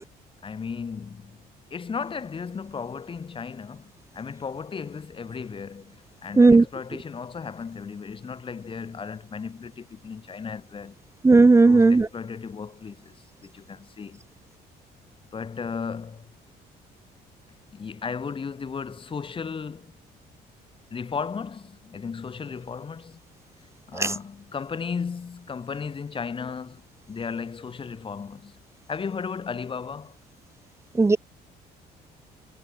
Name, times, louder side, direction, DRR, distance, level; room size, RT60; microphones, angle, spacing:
voice 1, 0.4-1.4 1.7-11.0 11.6-14.2 15.3-16.3 17.7-20.0 20.9-23.2 23.9-28.6 28.9-30.2, left 5 dB, 30° left, 2.9 m, -35 dB
voice 2, 11.2-12.1 23.9-24.1 31.0-31.2, right 3 dB, 15° right, 0.9 m, -15 dB
cardioid pair, 110°, 17 cm